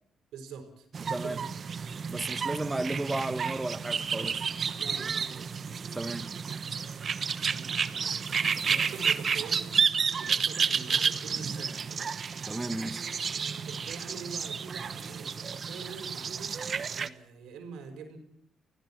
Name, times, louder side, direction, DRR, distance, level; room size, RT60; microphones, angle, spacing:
voice 1, 0.3-0.9 1.2-1.5 4.8-5.6 7.3-9.9 10.2-12.0 13.5-16.6 16.9-18.2, right 5 dB, 85° right, 5.2 m, -45 dB
sound 1, 0.9-17.1, right 6 dB, 45° right, 1.0 m, -31 dB
voice 2, 2.1-4.5 5.9-6.3 12.5-13.1, right 2 dB, 15° right, 1.3 m, -33 dB
29.5 x 17.0 x 6.0 m
cardioid pair, 90°, 0 cm